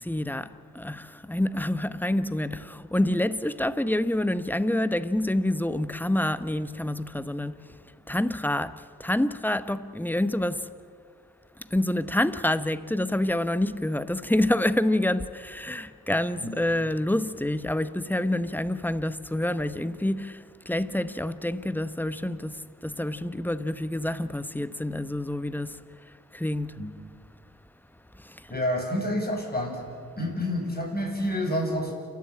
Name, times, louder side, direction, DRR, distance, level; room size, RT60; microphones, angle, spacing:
voice 1, 0.0-7.6 8.1-10.7 11.7-25.8 26.3-26.8 28.2-28.5, left 1 dB, 5° left, 1.0 m, -27 dB
voice 2, 28.5-29.9 30.2-31.9, left 1 dB, 25° left, 7.3 m, -28 dB
29.0 x 13.5 x 8.7 m
cardioid pair, 55°, 37 cm